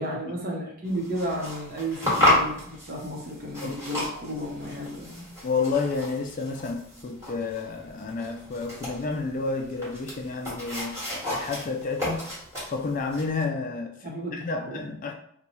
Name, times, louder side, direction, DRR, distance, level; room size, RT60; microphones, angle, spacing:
voice 1, 0.0-5.3 14.0-14.9, equal, 40° right, -1 dB, 0.8 m, -33 dB
sound 1, 0.8-13.4, left 1 dB, 15° right, 1.3 m, -32 dB
voice 2, 5.4-11.0 11.3-12.3 12.7-13.9 14.3-15.1, left 4 dB, 40° left, 3 dB, 0.3 m, -30 dB
3.0 x 2.2 x 4.0 m, 0.68 s
head